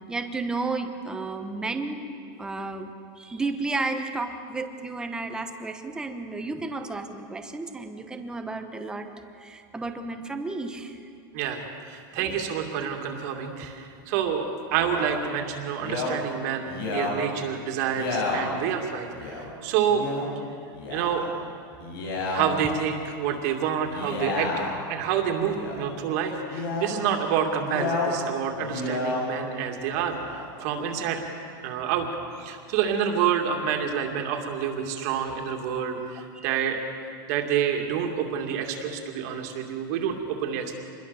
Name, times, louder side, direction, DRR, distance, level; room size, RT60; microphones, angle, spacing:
voice 1, 0.0-2.0 2.4-9.1 9.4-11.1 12.1-12.5 36.3-36.5, right 3 dB, 5° right, 6 dB, 1.1 m, -32 dB
voice 2, 11.3-20.0 20.9-21.3 22.3-24.5 24.9-31.2 31.6-32.1 32.4-36.8 37.3-40.8, right 8 dB, 45° right, 3 dB, 2.6 m, -28 dB
Male speech man speaking, 14.7-15.1 15.8-16.1 16.6-17.1 17.9-18.4 19.1-19.4 19.9-20.3 20.7-21.3 21.8-22.4 23.8-24.8 25.4-25.8 26.5-26.9 27.6-28.1 28.6-29.2 29.9-30.5, left 3 dB, 90° left, 7.3 m, -31 dB
27.0 x 21.5 x 7.1 m, 2.4 s
supercardioid pair, 175°, 12 cm